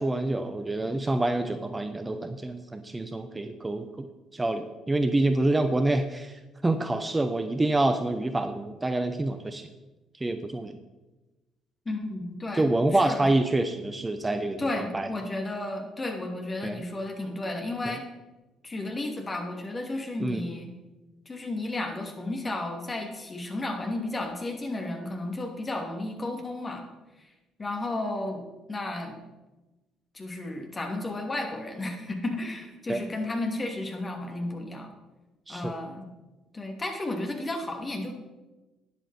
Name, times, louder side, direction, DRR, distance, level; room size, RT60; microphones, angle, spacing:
voice 1, 0.0-4.1 4.3-9.7 10.2-10.8 12.6-15.1 16.6-16.8 17.9-18.0 20.2-20.4 32.9-33.0 35.5-35.7, right 2 dB, 20° right, 9 dB, 0.8 m, -27 dB
voice 2, 11.8-13.3 14.6-18.0 18.6-20.7 21.3-26.8 27.2-27.3 27.6-29.2 30.1-35.0 35.5-36.1 36.5-38.1, left 2 dB, 25° left, 2 dB, 2.7 m, -33 dB
12.5 x 10.0 x 4.4 m, 1.1 s
figure-of-eight pair, 45°, 0 cm